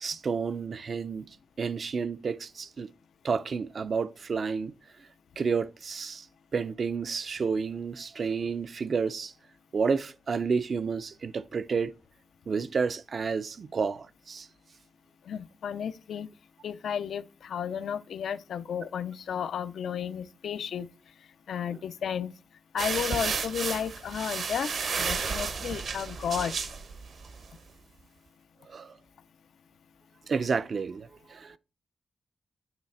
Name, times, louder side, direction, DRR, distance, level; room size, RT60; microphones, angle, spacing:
voice 1, 0.0-1.3 1.6-2.9 3.2-4.7 5.4-6.3 6.5-9.3 9.7-11.9 12.5-14.5 28.7-28.9 30.3-31.6, right 5 dB, 55° right, 0.4 m, -30 dB
voice 2, 15.3-16.3 16.6-20.9 21.5-22.3 22.7-24.7 25.0-26.6, left 8 dB, 85° left, 0.4 m, -33 dB
sound 1, 22.8-27.5, right 5 dB, 70° right, 0.9 m, -32 dB
8.8 x 3.2 x 4.2 m
wide cardioid pair, 105°, 0 cm